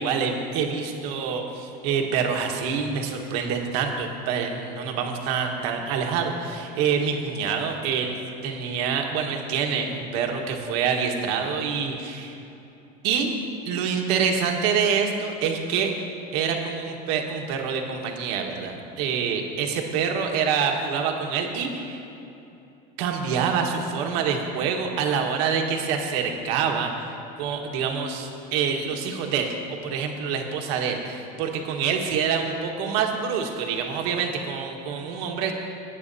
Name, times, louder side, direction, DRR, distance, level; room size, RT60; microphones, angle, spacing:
voice 1, 0.0-12.4 13.0-13.3 13.6-15.9 16.3-22.0 23.0-35.5, right 6 dB, 75° right, 2 dB, 1.5 m, -26 dB
19.0 x 9.2 x 2.7 m, 2.8 s
supercardioid pair, 115°, 21 cm